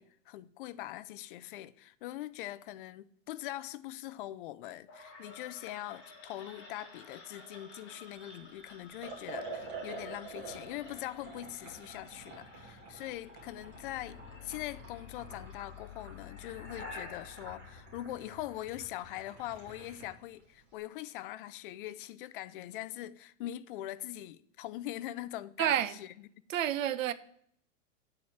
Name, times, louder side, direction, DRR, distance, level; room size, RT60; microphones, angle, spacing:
voice 1, 0.0-26.1, left 14 dB, 45° left, 0.4 m, -42 dB
sound 1, 4.9-18.8, left 4 dB, 30° left, 2.7 m, -51 dB
Liquid, 9.0-20.2, right 3 dB, 30° right, 2.2 m, -48 dB
voice 2, 25.6-25.9 26.5-27.1, right 11 dB, 90° right, 0.7 m, -29 dB
8.2 x 4.3 x 5.9 m
supercardioid pair, 145°, 38 cm